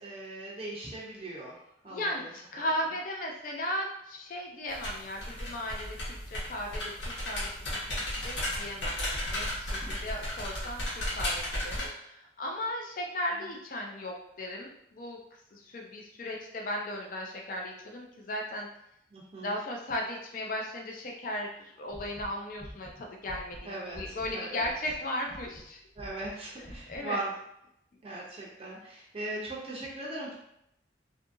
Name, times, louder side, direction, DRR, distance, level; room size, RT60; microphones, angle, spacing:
voice 1, 0.0-1.6 1.8-2.3 9.8-9.9 19.1-19.6 23.6-24.7 26.0-27.3 28.0-30.3, right 2 dB, 35° right, -4 dB, 0.5 m, -39 dB
voice 2, 1.9-15.2 15.5-18.7 19.4-25.8 26.9-27.2, left 1 dB, 50° left, 0 dB, 0.4 m, -36 dB
sound 1, 4.7-11.9, left 1 dB, 85° left, 1.0 m, -34 dB
sound 2, 21.9-24.3 24.6-25.0 25.3-25.7 25.9-26.3 26.6-27.0, equal, 20° left, 0.9 m, -46 dB
2.6 x 2.5 x 2.5 m, 0.76 s
head